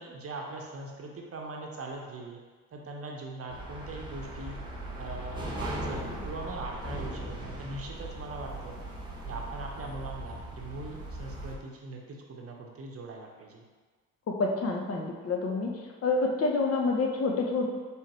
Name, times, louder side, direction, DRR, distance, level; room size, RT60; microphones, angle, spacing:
voice 1, 0.0-2.4 2.7-4.6 5.0-8.8 9.3-13.6, right 2 dB, 35° right, 0 dB, 0.9 m, -41 dB
sound 1, 3.5-11.5, right 1 dB, 10° right, 1.1 m, -39 dB
voice 2, 14.3-15.7 16.0-17.7, left 3 dB, 40° left, 1 dB, 0.8 m, -28 dB
4.5 x 3.4 x 3.0 m, 1.4 s
hypercardioid pair, 60°, 39 cm